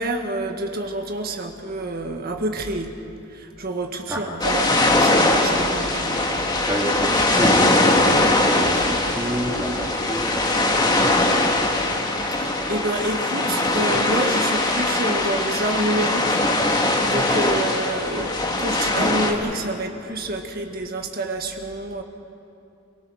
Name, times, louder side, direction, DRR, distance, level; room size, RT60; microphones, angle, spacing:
voice 1, 0.0-2.9 3.3-6.2 12.4-16.4 16.8-22.0, right 1 dB, 50° right, 4 dB, 1.8 m, -28 dB
voice 2, 4.1-4.4 6.6-11.5 17.1-17.4, equal, 10° right, -3 dB, 2.5 m, -29 dB
sound 1, 4.4-19.3, left 2 dB, 20° left, 2.0 m, -21 dB
28.5 x 18.5 x 6.5 m, 2.7 s
head